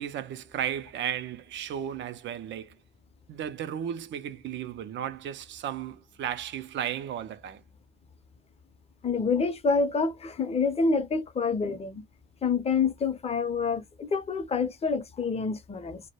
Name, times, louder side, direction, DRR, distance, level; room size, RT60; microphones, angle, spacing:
voice 1, 0.0-2.8 3.3-7.6, right 9 dB, 70° right, 0.4 m, -34 dB
voice 2, 9.0-12.0 12.4-16.0, left 4 dB, 30° left, 0.6 m, -27 dB
2.1 x 2.1 x 2.8 m
cardioid pair, 90°, 20 cm